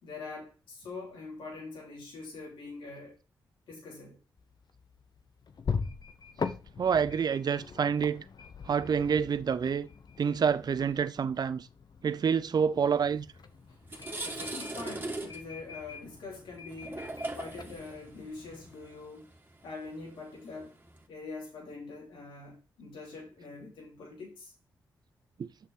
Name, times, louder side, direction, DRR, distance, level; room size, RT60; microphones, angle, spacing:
voice 1, 0.0-3.1 3.7-4.2 13.7-13.8 14.2-17.0 17.3-19.3 19.6-20.8 21.1-24.5, left 3 dB, 80° left, 3.4 m, -44 dB
sound 1, 4.4-18.8, left 5 dB, 55° left, 1.0 m, -42 dB
voice 2, 6.8-8.2 8.7-9.9 10.2-11.7 12.0-13.3 25.4-25.5, right 6 dB, 55° right, 0.5 m, -27 dB
sound 2, 13.2-13.4 13.7-21.0, right 2 dB, 25° right, 2.2 m, -41 dB
6.6 x 6.2 x 4.7 m
supercardioid pair, 45°, 8 cm